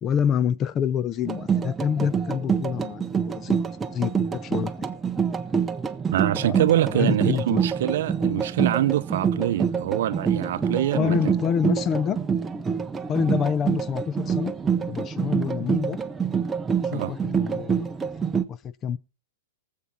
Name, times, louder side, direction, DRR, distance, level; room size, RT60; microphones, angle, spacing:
voice 1, 0.0-4.9 6.4-6.6 6.9-7.6 11.0-12.2 13.1-14.5 14.9-16.0 16.9-18.1 18.5-19.0, left 8 dB, 25° left, 0.6 m, -27 dB
sound 1, 1.2-18.4, right 6 dB, 15° right, 0.8 m, -26 dB
voice 2, 6.1-11.3 16.9-17.1, right 13 dB, 65° right, 0.7 m, -25 dB
19.0 x 7.6 x 4.3 m
hypercardioid pair, 130°, 0 cm